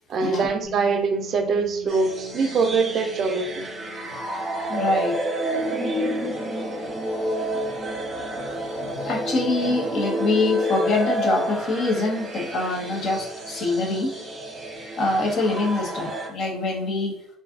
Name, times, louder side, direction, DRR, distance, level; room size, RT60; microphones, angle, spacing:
voice 1, 0.1-3.7, right 4 dB, 45° right, 6 dB, 0.4 m, -23 dB
Bass guitar, 0.6-6.9, left 15 dB, 90° left, 1.1 m, -47 dB
sound 1, 1.9-16.3, equal, 15° right, 0.9 m, -29 dB
voice 2, 4.7-5.2 9.0-14.1 15.0-17.2, left 2 dB, 50° left, 0 dB, 0.8 m, -24 dB
2.6 x 2.3 x 3.5 m, 0.71 s
cardioid pair, 120°, 0 cm